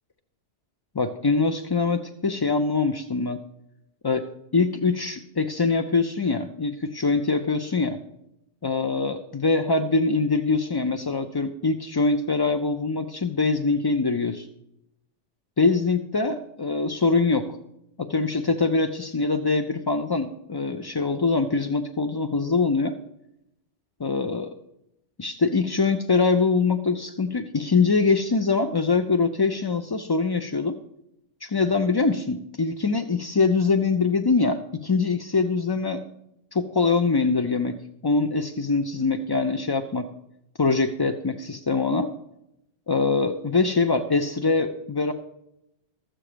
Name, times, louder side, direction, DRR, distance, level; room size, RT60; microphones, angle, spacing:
voice 1, 0.9-3.4 4.0-8.0 8.6-14.5 15.6-17.5 18.0-22.9 24.0-24.5 25.2-30.8 31.4-36.0 36.5-37.8 38.0-40.1 40.6-42.1 42.9-45.1, left 4 dB, 40° left, 7 dB, 0.3 m, -23 dB
13.5 x 7.5 x 5.0 m, 0.83 s
omnidirectional pair, 1.2 m